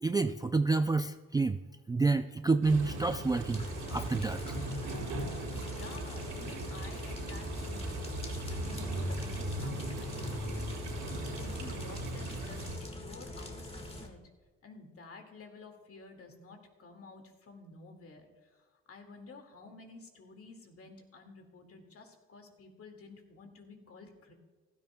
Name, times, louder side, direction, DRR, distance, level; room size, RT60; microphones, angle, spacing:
voice 1, 0.0-1.6 1.9-3.6 3.9-4.6, right 3 dB, 15° right, 9 dB, 0.3 m, -28 dB
sound 1, 2.6-12.8, right 2 dB, 85° right, 3.5 m, -38 dB
sound 2, 3.5-14.1, left 2 dB, 20° left, 1.6 m, -43 dB
voice 2, 5.6-8.1 8.5-10.6 11.4-14.2 14.6-24.3, left 3 dB, 50° left, 4 dB, 2.1 m, -51 dB
15.5 x 13.0 x 2.2 m, 1.4 s
cardioid pair, 90°, 30 cm